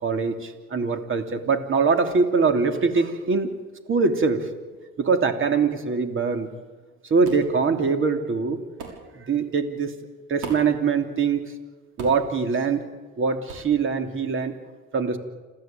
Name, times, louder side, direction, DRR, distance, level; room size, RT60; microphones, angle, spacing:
voice 1, 0.0-3.5 3.9-4.5 5.0-6.5 7.0-8.6 9.1-9.9 10.3-11.4 12.0-12.8 13.2-14.5 14.9-15.2, right 5 dB, 40° right, 7 dB, 3.1 m, -23 dB
sound 1, 7.2-7.5 8.8-9.0 10.4-10.8 12.0-12.3 13.5-13.7, right 5 dB, 70° right, 6.2 m, -36 dB
28.0 x 14.5 x 9.2 m, 1.4 s
supercardioid pair, 90°, 32 cm